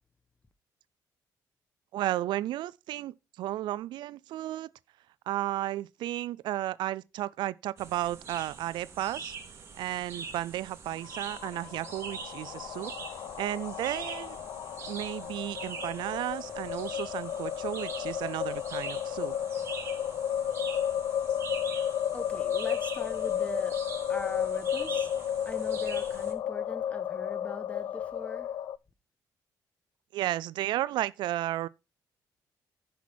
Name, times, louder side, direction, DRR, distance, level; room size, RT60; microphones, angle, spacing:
voice 1, 1.9-4.7 5.3-9.3 9.8-12.9 13.4-14.4 14.9-19.4 30.1-31.7, right 14 dB, 85° right, 0.4 m, -33 dB
sound 1, 7.8-26.3, right 5 dB, 35° right, 2.5 m, -44 dB
sound 2, 10.9-28.8, left 10 dB, 60° left, 0.4 m, -33 dB
voice 2, 22.1-28.6, left 2 dB, 15° left, 1.2 m, -41 dB
10.5 x 5.8 x 4.4 m
cardioid pair, 140°, 8 cm